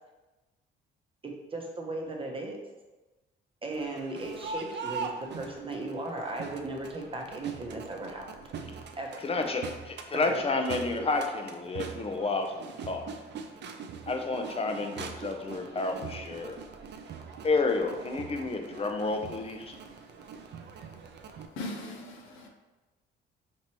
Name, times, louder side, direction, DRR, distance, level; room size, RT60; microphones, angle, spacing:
voice 1, 1.2-2.6 3.6-8.7 9.0-9.1 10.1-10.4 10.7-11.1, right 2 dB, 25° right, 0 dB, 0.8 m, -37 dB
Crowd, 3.7-21.5, right 5 dB, 60° right, 0.5 m, -42 dB
voice 2, 9.2-13.1 14.1-16.6 17.4-19.7, left 3 dB, 30° left, 5 dB, 0.6 m, -30 dB
voice 3, 21.6-22.5, left 1 dB, 90° left, 2 dB, 0.7 m, -39 dB
5.2 x 3.0 x 3.0 m, 1.1 s
cardioid pair, 90°, 20 cm